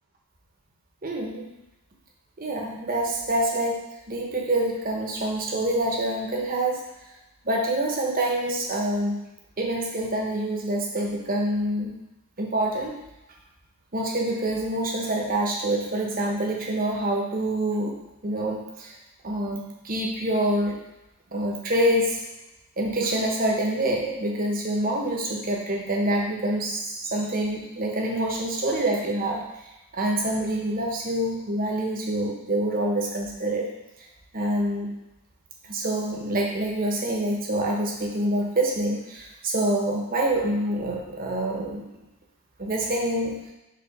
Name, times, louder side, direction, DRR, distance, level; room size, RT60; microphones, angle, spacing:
voice 1, 1.0-1.6 2.4-6.8 7.4-9.2 9.6-11.9 12.4-13.0 13.9-17.9 18.2-18.9 19.2-20.8 21.3-22.2 22.8-29.4 29.9-33.7 34.3-34.9 35.7-41.8 42.6-43.3, right 1 dB, 40° right, 0 dB, 1.1 m, -26 dB
5.0 x 3.8 x 5.2 m, 0.94 s
head